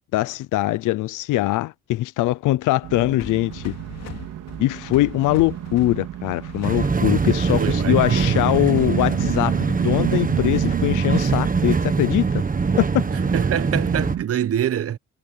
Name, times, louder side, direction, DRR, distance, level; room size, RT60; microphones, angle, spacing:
voice 1, 0.1-3.7 4.6-12.2 12.8-13.1, left 16 dB, 90° left, 0.7 m, -22 dB
sound 1, 2.8-14.2, right 12 dB, 80° right, 3.4 m, -31 dB
sound 2, 3.2-10.0, left 8 dB, 60° left, 3.2 m, -39 dB
sound 3, 6.6-14.2, right 4 dB, 30° right, 1.4 m, -23 dB
voice 2, 7.6-8.7 13.3-15.0, right 10 dB, 50° right, 1.0 m, -25 dB
cardioid pair, 90°, 30 cm